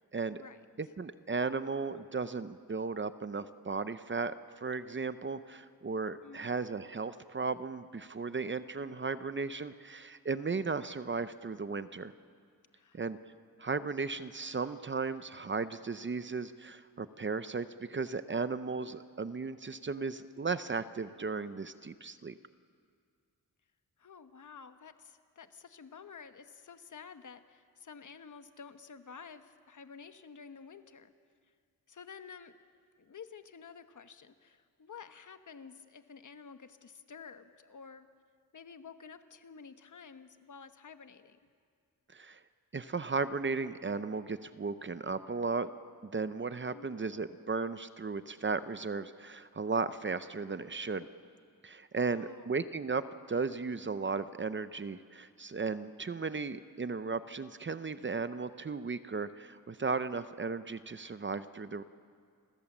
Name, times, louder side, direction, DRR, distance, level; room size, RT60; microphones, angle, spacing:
voice 1, 0.1-0.4 0.8-12.1 12.9-13.2 13.6-22.4 42.1-42.4 42.7-45.7 46.0-51.1 51.6-61.8, right 4 dB, 30° right, 12 dB, 0.7 m, -35 dB
voice 2, 6.2-6.5 12.7-13.0 24.0-31.1 31.9-32.6 33.0-38.1 38.5-41.4 46.7-47.0 51.9-52.5, left 6 dB, 55° left, 9 dB, 1.2 m, -51 dB
29.5 x 23.0 x 7.3 m, 2.1 s
wide cardioid pair, 155°, 36 cm